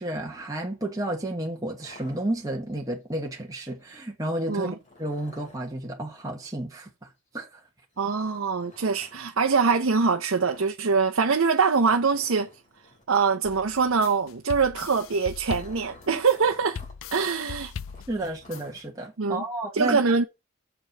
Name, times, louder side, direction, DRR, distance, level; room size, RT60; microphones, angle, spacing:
voice 1, 0.0-7.6 18.1-20.0, right 1 dB, 15° right, 1.3 m, -32 dB
sound 1, 1.8-2.8 4.8-5.7 7.9-9.2 10.4-10.8 11.0-11.2 11.5-11.6 12.0-13.1 14.7-17.0 17.3-17.4 17.9-19.1, left 1 dB, 35° left, 3.4 m, -52 dB
voice 2, 8.0-12.5 13.1-16.8 17.1-17.7 19.2-19.4 19.7-20.3, right 5 dB, 75° right, 0.7 m, -23 dB
sound 2, 13.5-18.8, left 6 dB, 70° left, 0.4 m, -40 dB
6.8 x 5.2 x 5.9 m
head